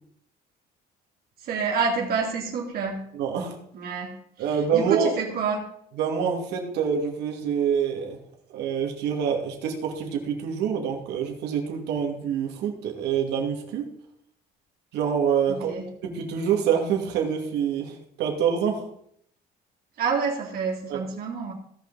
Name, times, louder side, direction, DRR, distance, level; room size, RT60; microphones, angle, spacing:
voice 1, 1.4-3.0 3.7-4.1 4.5-5.7 15.5-15.9 20.0-21.5, right 5 dB, 65° right, -1 dB, 3.0 m, -28 dB
voice 2, 3.1-3.6 4.4-5.1 6.0-8.2 8.5-13.9 14.9-15.7 16.0-18.9 20.9-21.0, right 7 dB, 85° right, 2 dB, 2.5 m, -26 dB
17.0 x 5.7 x 4.1 m, 0.68 s
cardioid pair, 110°, 17 cm